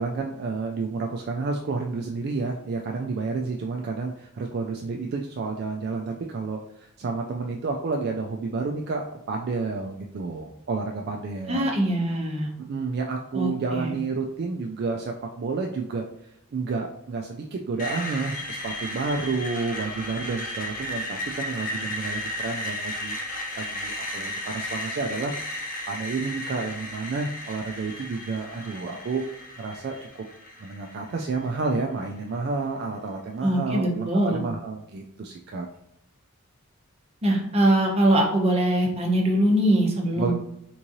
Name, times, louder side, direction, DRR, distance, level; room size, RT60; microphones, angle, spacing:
voice 1, 0.0-11.7 12.7-30.2 30.6-35.7 40.1-40.3, right 4 dB, 50° right, 1 dB, 0.3 m, -30 dB
voice 2, 11.5-12.5 13.3-13.9 33.4-34.4 37.2-40.3, right 1 dB, 30° right, 0 dB, 0.8 m, -22 dB
Screech, 17.8-31.7, left 1 dB, 40° left, 0.7 m, -34 dB
3.6 x 3.0 x 2.7 m, 0.78 s
head